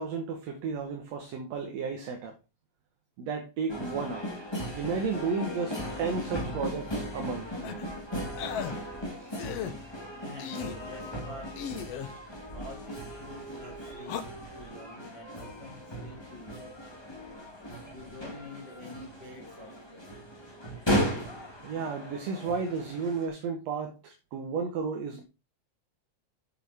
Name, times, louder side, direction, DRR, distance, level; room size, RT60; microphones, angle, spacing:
voice 1, 0.0-2.3 3.2-4.3 4.8-7.5 9.2-9.3 21.6-25.2, right 5 dB, 65° right, 2.3 m, -33 dB
sound 1, 3.7-23.3, equal, 10° left, 2.0 m, -36 dB
sound 2, 7.6-7.9 8.4-8.7 9.4-9.7 10.4-10.8 11.6-12.1 14.0-14.2, left 9 dB, 65° left, 1.9 m, -36 dB
voice 2, 10.2-11.9 12.5-14.3 14.6-16.9 17.9-20.1, left 1 dB, 20° right, 4.1 m, -47 dB
8.4 x 7.5 x 4.3 m
omnidirectional pair, 3.3 m